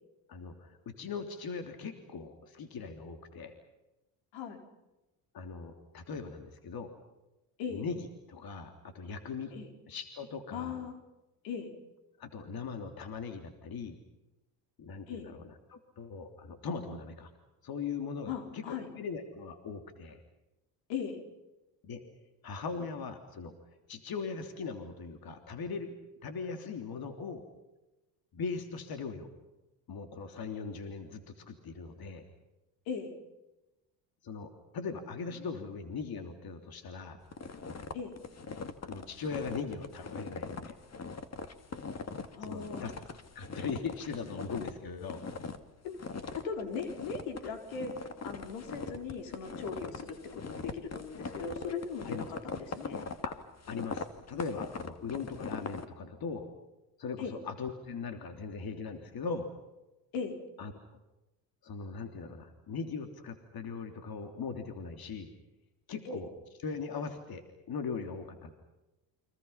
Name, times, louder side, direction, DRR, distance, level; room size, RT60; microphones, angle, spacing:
voice 1, 0.3-3.5 5.3-6.9 7.7-9.5 9.9-10.8 12.2-14.0 14.8-17.3 17.6-20.2 21.8-22.0 22.4-23.5 23.9-25.9 26.2-27.4 28.3-29.3 29.9-32.2 34.2-37.2 38.8-40.7 42.4-42.9 43.3-45.2 52.0-52.4 53.2-53.3 53.7-56.5 57.0-59.5 60.6-60.7 61.6-65.3 65.9-66.3 66.6-67.4 67.7-68.5, left 5 dB, 55° left, 6 dB, 3.3 m, -40 dB
voice 2, 10.5-10.9 11.4-11.7 15.1-15.3 18.3-18.9 20.9-21.2 32.9-33.1 37.9-38.2 42.4-42.9 45.8-46.0 46.3-47.9 48.2-53.0 57.2-57.4 60.1-60.4 66.1-66.2, left 6 dB, 80° left, 5 dB, 4.5 m, -38 dB
sound 1, 37.3-44.7 45.0-45.6 46.0-55.9, left 4 dB, 35° left, 2.5 m, -41 dB
29.5 x 25.0 x 5.8 m, 1.0 s
supercardioid pair, 70°, 44 cm